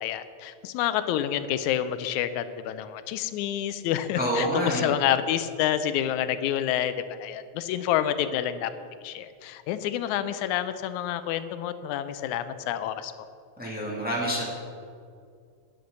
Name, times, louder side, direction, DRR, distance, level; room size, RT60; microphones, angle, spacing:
voice 1, 0.0-8.7 9.0-13.1, left 11 dB, 85° left, 12 dB, 2.0 m, -28 dB
voice 2, 4.2-4.9 13.6-14.4, equal, 5° right, -5 dB, 1.9 m, -27 dB
10.0 x 7.8 x 6.7 m, 2.3 s
omnidirectional pair, 3.3 m